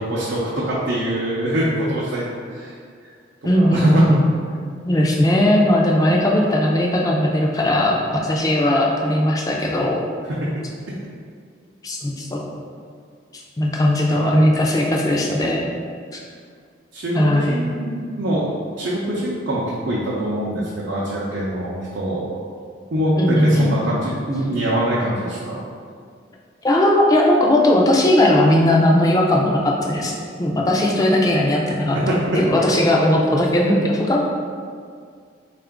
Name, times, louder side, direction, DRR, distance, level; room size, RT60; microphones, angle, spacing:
voice 1, 0.0-2.7 3.5-4.0 10.3-10.5 14.1-14.3 16.9-18.4 18.8-22.4 22.9-25.6 31.9-32.2, right 1 dB, 70° right, -6 dB, 0.5 m, -24 dB
voice 2, 3.4-4.3 4.8-10.0 11.8-12.5 13.3-15.7 16.1-16.2 17.1-17.6 23.2-23.8 26.6-30.1 30.4-34.2, left 1 dB, 20° left, -1 dB, 0.3 m, -18 dB
3.7 x 2.4 x 3.4 m, 2.1 s
head